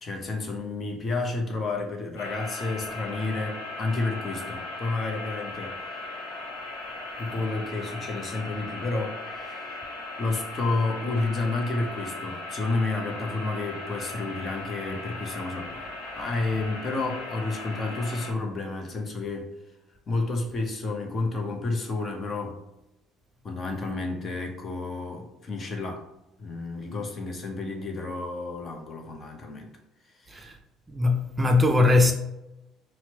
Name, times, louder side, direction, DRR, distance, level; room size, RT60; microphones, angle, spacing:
voice 1, 0.0-5.8 7.2-9.8 10.2-15.9 16.2-19.5 20.1-22.6 23.4-26.1 26.4-29.7 30.2-30.5, left 3 dB, 40° left, 0.8 m, -30 dB
sound 1, 2.2-18.3, left 2 dB, 80° left, 0.8 m, -38 dB
voice 2, 30.9-32.1, left 3 dB, 20° right, 0.5 m, -20 dB
4.2 x 2.1 x 2.8 m
hypercardioid pair, 55°, 0 cm